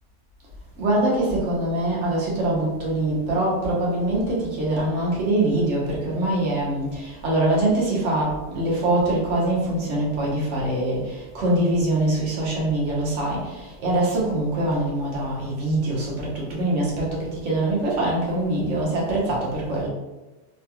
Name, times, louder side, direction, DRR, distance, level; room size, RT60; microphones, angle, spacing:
voice 1, 0.8-19.9, right 1 dB, 75° right, -4 dB, 1.3 m, -23 dB
3.2 x 2.3 x 2.9 m, 1.1 s
omnidirectional pair, 1.2 m